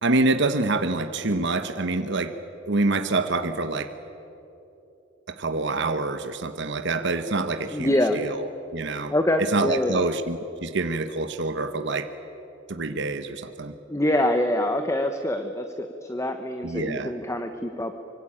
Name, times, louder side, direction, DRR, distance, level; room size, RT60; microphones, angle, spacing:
voice 1, 0.0-2.3 2.7-3.9 5.3-9.1 9.4-12.1 12.7-13.7 16.6-17.1, right 3 dB, 65° right, 9 dB, 1.1 m, -26 dB
voice 2, 7.7-8.2 9.1-10.1 13.9-17.9, left 1 dB, 15° left, 7 dB, 1.1 m, -25 dB
24.5 x 24.5 x 8.9 m, 3.0 s
head